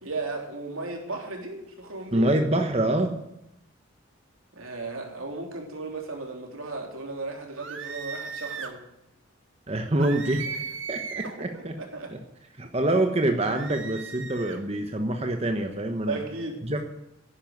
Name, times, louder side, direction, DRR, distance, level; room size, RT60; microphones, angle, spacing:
voice 1, 0.0-2.3 4.5-8.8 11.2-12.1 16.1-16.7, right 3 dB, 85° right, 2 dB, 3.5 m, -35 dB
voice 2, 2.1-3.1 9.7-10.4 10.9-11.7 12.1-12.2 12.6-16.2 16.6-16.8, right 1 dB, 30° right, 5 dB, 1.1 m, -25 dB
sound 1, 7.6-8.8 10.0-11.4 13.4-14.6, right 6 dB, 65° right, 1.6 m, -37 dB
11.5 x 10.0 x 9.3 m, 0.84 s
head